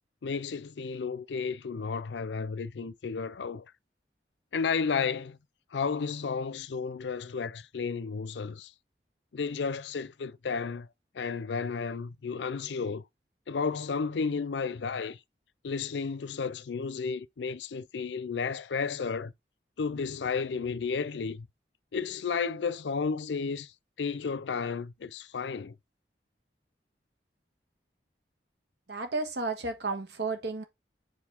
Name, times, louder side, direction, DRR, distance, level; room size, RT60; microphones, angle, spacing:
voice 1, 0.2-3.7 4.5-5.4 5.7-8.7 9.3-10.9 11.1-13.0 13.5-15.2 15.6-19.3 19.8-21.5 21.9-23.7 24.0-25.8, left 5 dB, 85° left, 0.5 m, -32 dB
voice 2, 28.9-30.6, right 3 dB, 75° right, 1.5 m, -32 dB
7.3 x 4.0 x 3.5 m
head